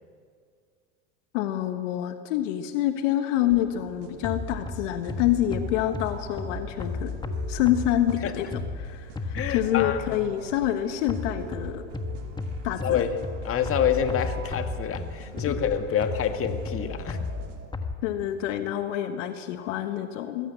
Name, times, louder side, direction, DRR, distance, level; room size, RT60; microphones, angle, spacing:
voice 1, 1.3-7.1 7.5-8.5 8.8-11.8 12.6-13.0 18.0-20.5, left 12 dB, 70° left, 8 dB, 1.4 m, -27 dB
sound 1, 3.4-17.7, right 6 dB, 65° right, 3.8 m, -44 dB
sound 2, 4.2-10.3 11.1-17.9, left 3 dB, 10° left, 1.5 m, -34 dB
voice 2, 9.3-10.2 12.8-13.2 13.4-17.2, left 8 dB, 35° left, 7 dB, 1.9 m, -27 dB
21.5 x 16.5 x 8.1 m, 2.1 s
hypercardioid pair, 105°, 39 cm